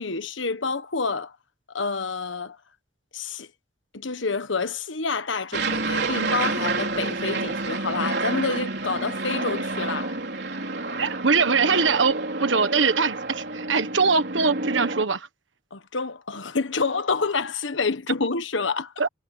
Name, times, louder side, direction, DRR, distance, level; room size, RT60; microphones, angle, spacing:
voice 1, 0.0-1.3 1.7-2.6 3.1-3.5 3.9-10.2 15.7-18.9, left 4 dB, 85° left, 1.5 m, -28 dB
Aircraft, 5.5-15.0, right 3 dB, 60° right, 4.0 m, -29 dB
voice 2, 11.0-15.3 19.0-19.1, right 5 dB, 80° right, 1.4 m, -22 dB
head